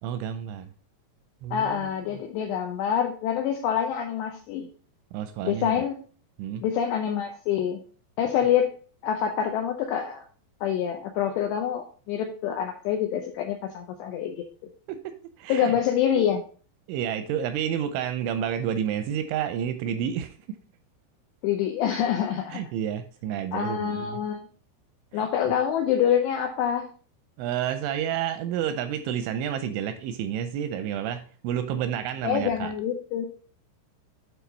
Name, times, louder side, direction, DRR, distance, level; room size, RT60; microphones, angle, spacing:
voice 1, 0.0-0.7 1.4-1.9 5.1-5.8 6.4-6.6 14.9-15.8 16.9-20.6 22.5-24.2 25.1-25.2 27.4-32.7, right 9 dB, 85° right, 9 dB, 2.8 m, -30 dB
voice 2, 1.5-4.7 5.4-5.9 6.6-7.8 8.2-8.7 9.0-10.2 10.6-14.5 15.5-16.4 21.4-22.6 23.5-24.5 25.1-26.9 32.2-33.3, left 9 dB, 85° left, 4 dB, 2.4 m, -26 dB
9.2 x 4.6 x 4.0 m, 0.41 s
omnidirectional pair, 5.8 m